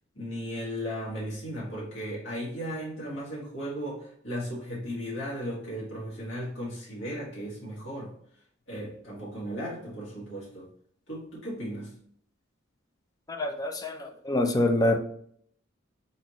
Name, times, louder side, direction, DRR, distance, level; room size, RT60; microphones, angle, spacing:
voice 1, 0.1-8.1 8.7-10.7 11.1-11.9, equal, 70° left, -6 dB, 1.9 m, -36 dB
voice 2, 13.3-15.0, left 1 dB, 20° left, 5 dB, 0.5 m, -26 dB
4.3 x 4.1 x 3.0 m, 0.63 s
head